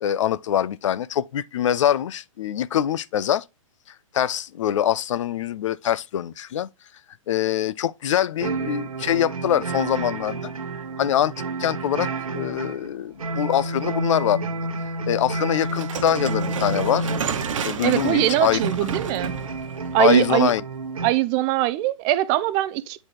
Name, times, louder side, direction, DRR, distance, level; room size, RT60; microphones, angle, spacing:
voice 1, 0.0-3.4 4.1-6.7 7.3-10.5 11.0-11.3 11.6-14.4 15.1-17.1 17.6-18.6 20.0-20.6, left 10 dB, 60° left, 0.6 m, -23 dB
sound 1, 8.4-21.1, right 2 dB, 85° right, 1.1 m, -30 dB
sound 2, 15.6-20.7, right 6 dB, 65° right, 1.2 m, -32 dB
voice 2, 17.8-19.3 19.9-20.5 21.0-23.0, right 15 dB, 30° right, 0.5 m, -21 dB
8.9 x 4.2 x 3.1 m
hypercardioid pair, 130°, 18 cm